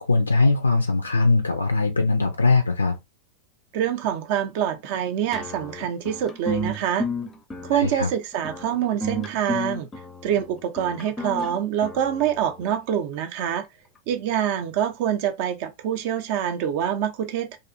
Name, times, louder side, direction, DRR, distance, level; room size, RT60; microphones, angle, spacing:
voice 1, 0.0-3.0 7.7-8.1, left 3 dB, 80° left, 0.3 m, -21 dB
voice 2, 3.7-7.1 7.6-9.9 10.2-13.7 14.1-17.6, right 9 dB, 50° right, 0.5 m, -25 dB
sound 1, 5.3-12.7, equal, 20° left, 0.5 m, -33 dB
2.5 x 2.4 x 2.5 m
figure-of-eight pair, 90°, 0 cm